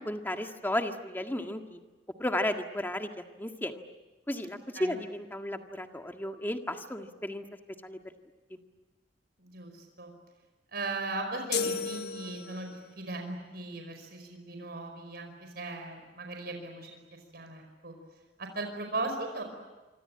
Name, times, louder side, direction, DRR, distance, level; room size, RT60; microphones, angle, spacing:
voice 1, 0.1-1.8 2.2-3.1 3.4-3.8 4.3-7.4 7.8-8.0, left 1 dB, 10° left, 5 dB, 1.8 m, -33 dB
voice 2, 4.5-5.0 9.4-10.1 10.7-16.9 17.3-17.9 18.4-19.4, right 2 dB, 60° right, 4 dB, 5.1 m, -38 dB
sound 1, 11.5-12.9, left 5 dB, 65° left, 1.3 m, -33 dB
26.5 x 25.5 x 8.8 m, 1.2 s
head